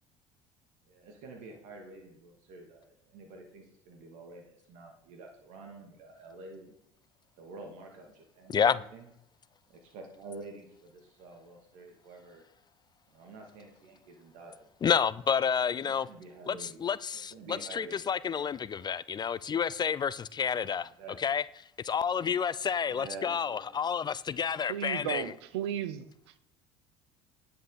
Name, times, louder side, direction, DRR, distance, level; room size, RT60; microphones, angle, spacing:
voice 1, 0.9-6.7 7.4-9.1 9.7-12.4 13.1-14.7 15.7-16.8 17.3-18.1 20.8-21.4 22.8-24.0, right 3 dB, 65° right, 2.4 m, -48 dB
voice 2, 8.5-8.8 14.8-16.1 16.5-20.9 21.2-21.4 21.8-25.3, left 7 dB, 30° left, 0.4 m, -29 dB
voice 3, 24.7-26.4, right 11 dB, 85° right, 0.8 m, -35 dB
10.0 x 8.2 x 4.1 m
hypercardioid pair, 70°, 14 cm